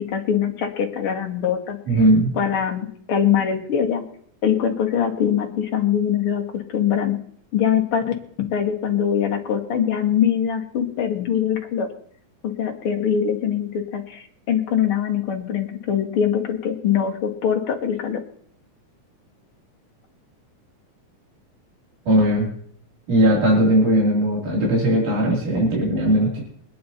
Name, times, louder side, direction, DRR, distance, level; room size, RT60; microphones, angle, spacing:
voice 1, 0.0-1.8 2.3-4.0 4.4-6.4 6.7-7.2 7.5-8.0 8.5-11.9 12.4-18.2, left 8 dB, 50° left, 2 dB, 2.1 m, -22 dB
voice 2, 1.9-2.3 22.1-22.5 23.1-26.4, right 1 dB, 80° right, -4 dB, 4.5 m, -18 dB
24.0 x 9.5 x 2.9 m, 0.62 s
omnidirectional pair, 3.5 m